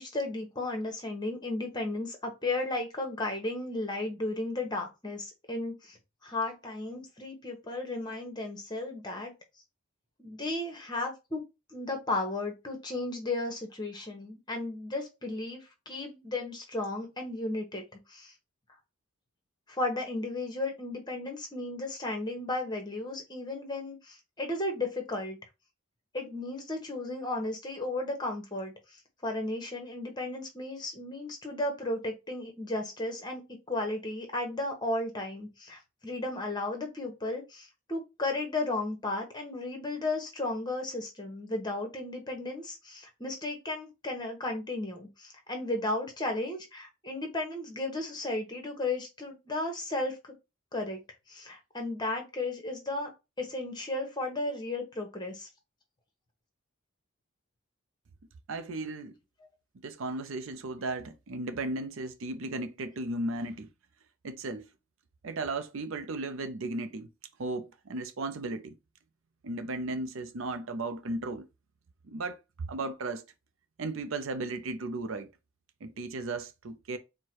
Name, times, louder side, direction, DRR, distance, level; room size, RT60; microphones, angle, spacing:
voice 1, 0.0-6.0 6.2-9.3 10.2-11.4 11.7-17.8 18.1-18.3 19.7-25.4 26.1-50.3 50.7-51.0 51.3-53.1 53.4-55.5, left 2 dB, 20° left, 1.0 m, -34 dB
voice 2, 58.5-59.2 59.8-63.7 64.2-64.7 65.2-67.1 67.4-68.7 69.4-71.5 72.1-73.2 73.8-75.3 75.8-77.0, right 2 dB, 65° right, 0.5 m, -35 dB
4.6 x 2.2 x 4.4 m
head